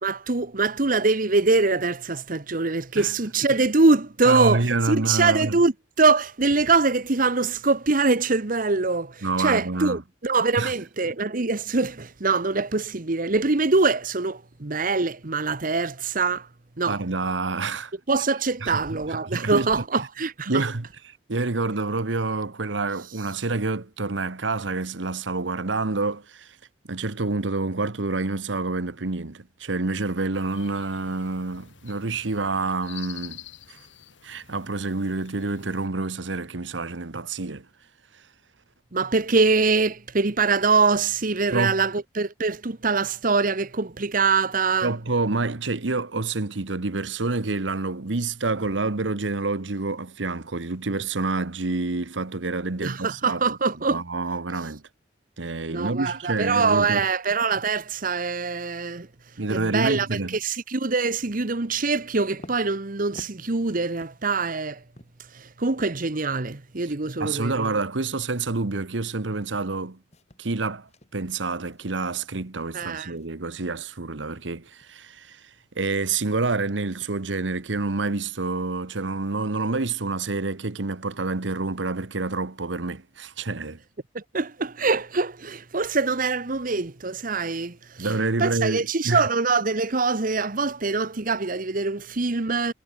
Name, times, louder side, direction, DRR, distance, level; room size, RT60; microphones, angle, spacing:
voice 1, 0.0-16.5 16.8-17.0 18.1-20.6 38.9-44.9 52.8-54.0 55.7-59.1 59.5-64.8 65.3-67.7 72.7-73.1 84.1-88.1 88.4-92.7, right 4 dB, 50° right, 1.1 m, -23 dB
voice 2, 4.2-5.6 9.2-10.0 10.6-10.7 16.9-17.9 18.6-19.8 20.5-26.6 26.9-33.4 33.7-33.8 34.2-37.7 41.5-41.8 44.8-53.6 53.8-54.8 55.4-57.1 59.4-60.4 67.2-70.0 70.4-75.5 75.7-83.8 88.0-89.3, right 3 dB, 85° right, 1.2 m, -28 dB
sound 1, 30.3-35.9, left 11 dB, 90° left, 2.5 m, -47 dB
sound 2, 62.4-73.3 73.6-74.0 74.4-78.7, left 1 dB, 35° left, 5.2 m, -52 dB
head